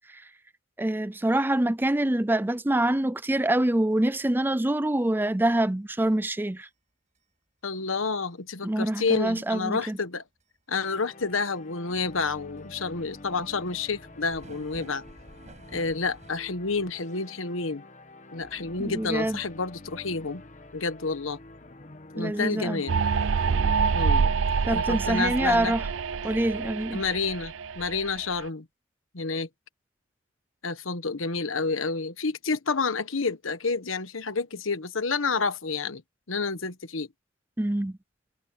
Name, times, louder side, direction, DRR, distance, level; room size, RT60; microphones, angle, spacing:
voice 1, 0.8-6.7 8.6-10.0 18.8-19.4 22.2-22.8 24.6-25.9 26.2-27.0 37.6-38.0, right 1 dB, 10° right, 0.5 m, -25 dB
sound 1, 3.4-3.5 3.9-4.0 4.4-4.5 5.0-5.1 5.5-5.6 6.1-6.2 6.6-6.7 7.2-7.3 7.7-7.8 8.2-8.3 8.8-8.9 9.3-9.4 9.9-10.0 10.4-10.5 10.9-11.2 11.5-11.6 11.9-16.4, right 1 dB, 35° right, 5.9 m, -51 dB
voice 2, 7.6-10.2 10.7-15.0 15.7-17.8 18.3-20.4 20.7-21.4 22.1-23.0 23.9-24.3 24.7-25.7 26.9-28.6 29.1-29.5 30.6-36.0 36.3-37.1, left 4 dB, 90° left, 1.3 m, -29 dB
sound 2, 10.7-23.8, left 2 dB, 40° left, 1.3 m, -47 dB
sound 3, 22.9-28.3, right 5 dB, 75° right, 0.5 m, -26 dB
head